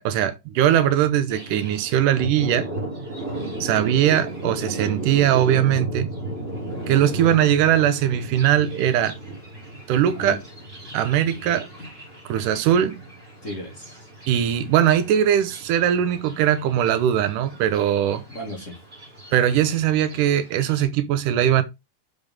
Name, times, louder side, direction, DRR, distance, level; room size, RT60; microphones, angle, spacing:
voice 1, 0.0-2.7 3.6-6.1 6.9-9.2 9.9-10.4 10.9-11.7 12.3-13.0 14.3-18.2 19.3-21.6, right 10 dB, 90° right, 2.4 m, -20 dB
Thunder, 1.3-20.8, right 1 dB, 20° right, 5.4 m, -35 dB
voice 2, 11.5-11.9 13.4-14.1 18.3-18.8, left 1 dB, 30° left, 1.9 m, -36 dB
6.7 x 6.7 x 3.6 m
omnidirectional pair, 3.6 m